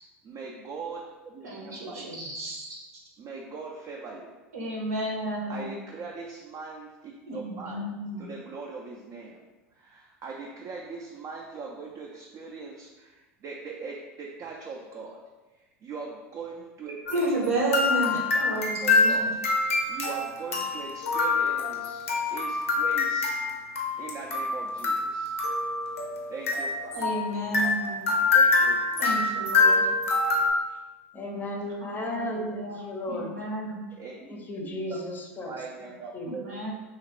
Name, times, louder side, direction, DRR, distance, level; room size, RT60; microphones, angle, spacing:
voice 1, 0.2-2.5 3.2-4.3 5.5-7.9 8.2-9.5 9.7-15.2 15.8-17.0 17.3-23.4 24.0-25.4 26.3-26.7 28.3-29.1 34.0-35.0 35.5-36.6, right 4 dB, 40° right, -1 dB, 0.4 m, -41 dB
voice 2, 1.4-2.7 4.5-5.7 7.3-8.3 17.1-19.3 26.9-28.1 29.0-29.9 31.8-33.8 36.2-36.7, right 2 dB, 80° right, -2 dB, 0.8 m, -32 dB
sound 1, 17.1-30.5, left 3 dB, 80° left, 0.5 m, -25 dB
voice 3, 31.1-33.3 34.3-35.6 36.1-36.3, left 1 dB, 25° left, 1 dB, 0.6 m, -35 dB
2.9 x 2.4 x 3.0 m, 1.2 s
hypercardioid pair, 85°, 7 cm